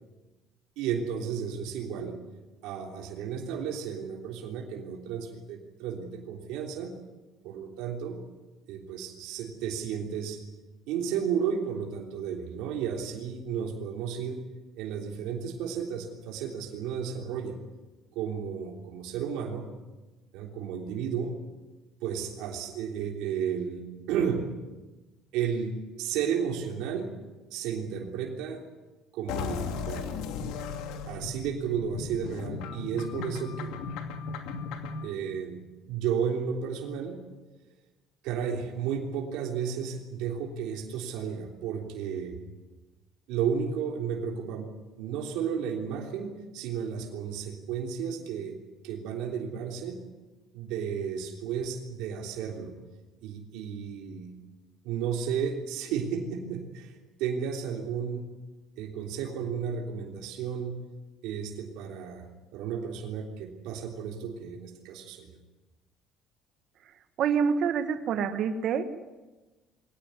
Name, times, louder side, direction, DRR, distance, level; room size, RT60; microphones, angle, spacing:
voice 1, 0.8-2.2 2.6-6.9 7.4-8.2 8.7-10.4 10.9-14.4 14.8-17.6 18.2-19.7 20.3-21.4 22.0-24.5 25.3-27.1 27.5-28.6 29.1-30.1 31.1-33.7 35.0-37.2 38.2-42.4 43.3-48.6 48.8-50.0 50.5-52.8 53.2-54.3 54.8-56.9 57.2-58.3 58.8-60.8 61.2-65.3, right 7 dB, 80° right, 2 dB, 3.4 m, -33 dB
sound 1, 29.3-35.1, left 5 dB, 80° left, 2.6 m, -36 dB
voice 2, 67.2-68.8, right 6 dB, 50° right, 7 dB, 1.4 m, -26 dB
22.5 x 18.5 x 9.8 m, 1.1 s
cardioid pair, 155°, 0 cm